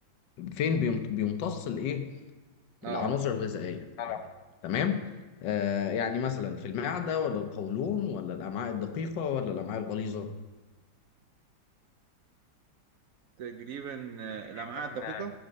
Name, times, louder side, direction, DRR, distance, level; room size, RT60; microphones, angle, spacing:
voice 1, 0.4-2.0 2.8-4.2 4.6-5.0 5.4-10.3 14.5-15.2, left 7 dB, 75° left, 8 dB, 1.3 m, -31 dB
voice 2, 2.8-3.1 13.4-15.3, right 7 dB, 85° right, 7 dB, 0.7 m, -38 dB
7.9 x 7.4 x 6.2 m, 1.2 s
omnidirectional pair, 2.1 m